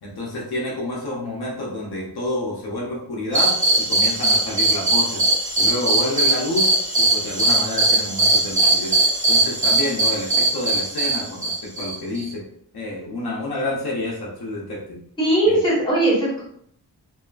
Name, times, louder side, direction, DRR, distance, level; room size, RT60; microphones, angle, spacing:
voice 1, 0.0-5.2 5.6-6.7 7.0-9.0 9.3-12.4 12.7-15.0 15.5-15.6, left 1 dB, 75° left, -3 dB, 0.7 m, -29 dB
sound 1, 3.3-12.3, right 2 dB, 20° right, 0.9 m, -20 dB
voice 2, 15.2-16.4, right 1 dB, 10° left, -8 dB, 1.3 m, -19 dB
2.6 x 2.4 x 2.3 m, 0.68 s
wide cardioid pair, 125°, 38 cm